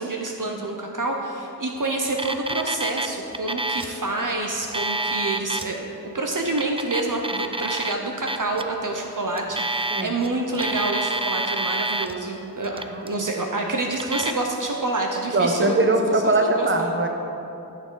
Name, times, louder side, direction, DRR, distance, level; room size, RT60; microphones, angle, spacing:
voice 1, 0.0-5.9 6.1-15.7 16.4-16.9, right 2 dB, 55° right, 1 dB, 0.8 m, -27 dB
Alarm, 2.1-3.1 3.3-3.9 4.6-5.7 6.5-7.9 8.3-8.6 9.4-10.3 10.5-12.1 12.6-13.1 13.9-14.3, right 2 dB, 15° right, 0.4 m, -27 dB
voice 2, 12.9-13.3 15.3-17.1, right 2 dB, 35° right, 4 dB, 0.9 m, -22 dB
13.5 x 6.5 x 3.8 m, 2.9 s
wide cardioid pair, 50°, 37 cm